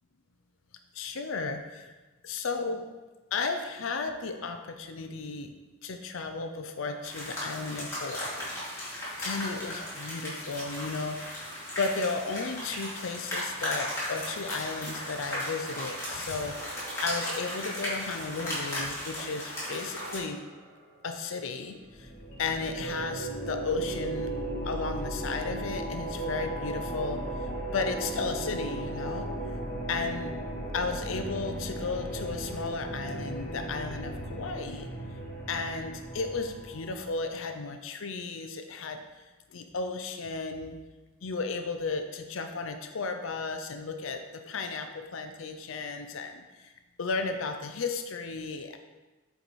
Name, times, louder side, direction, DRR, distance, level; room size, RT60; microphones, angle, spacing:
voice 1, 0.9-1.9 2.2-2.9 3.3-5.5 5.8-16.6 17.0-20.4 21.0-22.1 22.4-24.3 24.6-29.3 29.9-30.3 30.7-34.9 35.5-39.0 39.5-40.8 41.2-46.7 47.0-48.8, left 4 dB, 75° left, 6 dB, 0.6 m, -34 dB
sound 1, 7.0-20.2, left 1 dB, 15° left, 2.5 m, -36 dB
sound 2, 14.5-22.7, right 1 dB, 45° right, 1.0 m, -48 dB
sound 3, 21.8-37.3, right 1 dB, 45° left, 2.0 m, -36 dB
8.1 x 4.7 x 4.1 m, 1.2 s
head